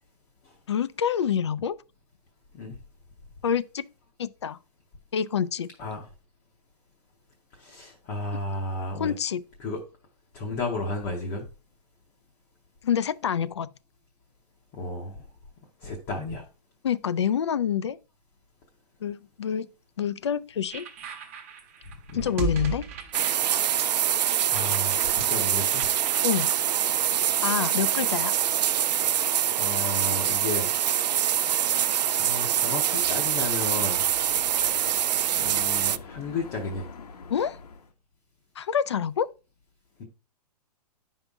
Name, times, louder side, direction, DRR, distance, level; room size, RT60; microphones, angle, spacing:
voice 1, 0.7-1.8 3.4-3.8 4.2-4.6 5.1-5.7 8.9-9.4 12.8-13.7 16.8-18.0 19.0-19.7 20.0-20.9 22.1-22.9 26.2-26.5 27.4-28.3 37.3-37.6 38.6-39.3, left 8 dB, 45° left, 0.4 m, -27 dB
voice 2, 7.5-9.1 9.6-9.8 10.3-11.5 14.7-15.2 15.8-16.4 22.1-22.3 24.0-25.9 27.7-28.0 29.6-30.7 31.4-31.9 32.2-34.0 35.4-36.9 40.0-40.1, left 2 dB, 15° left, 0.7 m, -33 dB
sound 1, 20.7-26.5, right 5 dB, 20° right, 0.7 m, -36 dB
sound 2, 23.1-36.0, right 10 dB, 85° right, 0.5 m, -25 dB
Dog / Motorcycle, 32.9-37.9, left 5 dB, 70° left, 1.1 m, -45 dB
9.1 x 5.4 x 3.5 m
hypercardioid pair, 175°, 21 cm